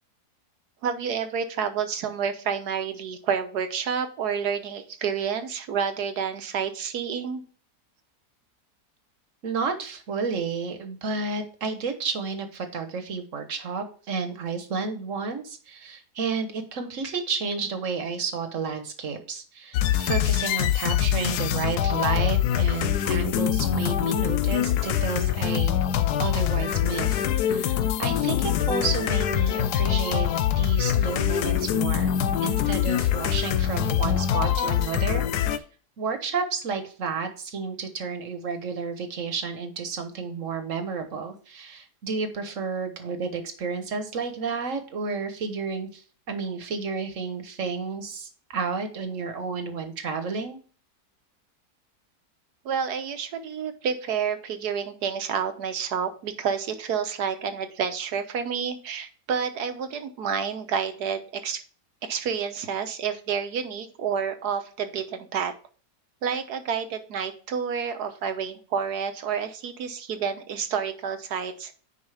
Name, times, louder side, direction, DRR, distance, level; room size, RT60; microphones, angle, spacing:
voice 1, 0.8-7.4 52.6-61.6 62.0-65.5 66.2-71.7, right 7 dB, 75° right, 8 dB, 1.4 m, -29 dB
voice 2, 9.4-25.7 26.2-30.3 30.6-32.1 32.4-35.2 36.0-50.6, right 5 dB, 50° right, 8 dB, 1.4 m, -31 dB
sound 1, 19.7-35.6, left 10 dB, 80° left, 1.2 m, -24 dB
9.7 x 4.9 x 3.4 m, 0.40 s
omnidirectional pair, 1.7 m